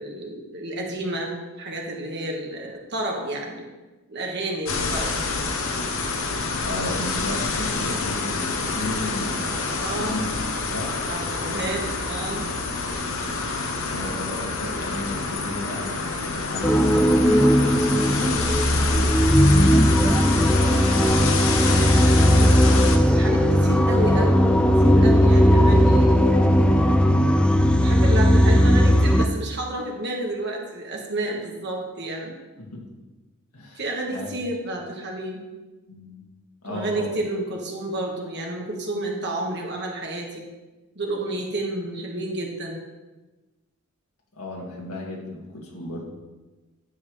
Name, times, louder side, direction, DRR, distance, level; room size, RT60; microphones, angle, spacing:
voice 1, 0.0-3.7 4.1-5.1 9.8-10.2 11.1-12.5 21.5-22.5 22.9-26.5 27.7-32.3 33.8-35.4 36.7-40.5 41.0-42.8, right 1 dB, 50° right, 0 dB, 1.6 m, -30 dB
sound 1, 4.7-23.0, left 4 dB, 65° left, 1.0 m, -27 dB
voice 2, 6.6-10.3 10.6-10.9 13.8-19.7 32.6-33.0 33.5-33.8 34.1-34.3 35.9-36.3 36.6-37.1 44.3-46.0, left 1 dB, 90° left, -2 dB, 2.0 m, -34 dB
sound 2, 16.6-29.3, equal, 5° left, 0.3 m, -17 dB
10.5 x 7.7 x 3.3 m, 1.2 s
head